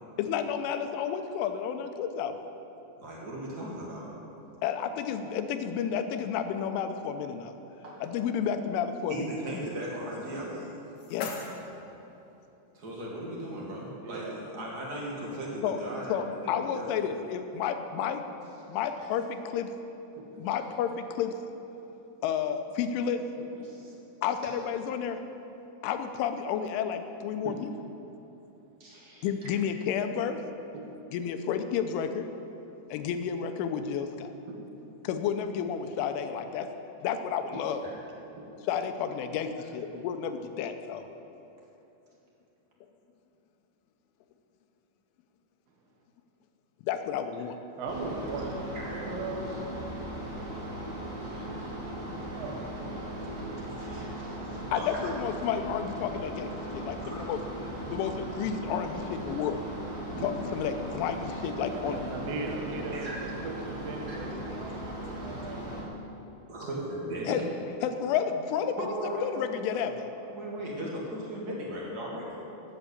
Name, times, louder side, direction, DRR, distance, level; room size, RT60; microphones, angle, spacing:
voice 1, 0.2-2.5 4.6-7.5 8.0-9.3 9.5-9.7 11.1-11.3 15.6-15.8 16.1-18.2 18.7-19.7 20.4-21.3 22.2-23.2 23.6-23.7 24.2-25.2 25.8-27.7 29.2-30.4 31.1-32.3 32.9-34.3 35.0-36.7 37.0-37.9 38.6-41.1 46.8-47.6 54.7-57.4 57.9-59.6 60.2-62.0 67.3-67.4 67.8-68.9 69.2-70.1, left 8 dB, 90° left, 8 dB, 3.2 m, -31 dB
voice 2, 3.0-4.2 7.8-8.1 9.1-10.8 12.7-17.1 23.6-23.9 28.8-29.5 37.8-37.9 48.7-49.0 51.3-51.7 53.6-55.1 57.1-57.3 57.6-57.8 59.1-59.2 62.9-63.3 64.1-64.2 66.5-67.4 68.7-69.6 70.3-72.4, right 1 dB, 50° right, -4 dB, 1.1 m, -38 dB
sound 1, 10.4-12.4, left 4 dB, 65° left, 2.1 m, -42 dB
voice 3, 14.0-14.3 16.5-16.6 20.2-20.3 23.4-23.5 27.4-27.5 30.7-30.9 34.5-34.6 37.5-37.7 38.4-38.5 47.8-49.8 52.0-53.0 60.1-60.3 61.5-65.8, right 3 dB, 80° right, 1 dB, 1.4 m, -39 dB
sound 2, 47.9-65.8, right 1 dB, 10° left, 2.3 m, -38 dB
13.5 x 8.0 x 8.6 m, 2.9 s
omnidirectional pair, 5.6 m